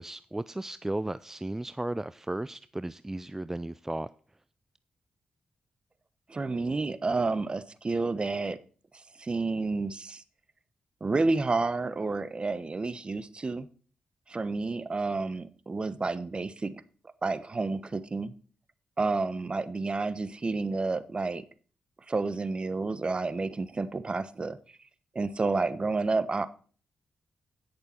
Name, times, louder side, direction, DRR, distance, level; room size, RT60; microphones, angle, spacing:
voice 1, 0.0-4.1, right 1 dB, 15° right, 0.4 m, -35 dB
voice 2, 6.3-8.6 9.2-10.2 11.0-13.7 14.3-16.8 17.2-18.3 19.0-21.4 22.1-24.6 25.1-26.5, right 3 dB, 35° right, 1.1 m, -30 dB
16.5 x 6.8 x 4.4 m
cardioid pair, 60°, 3 cm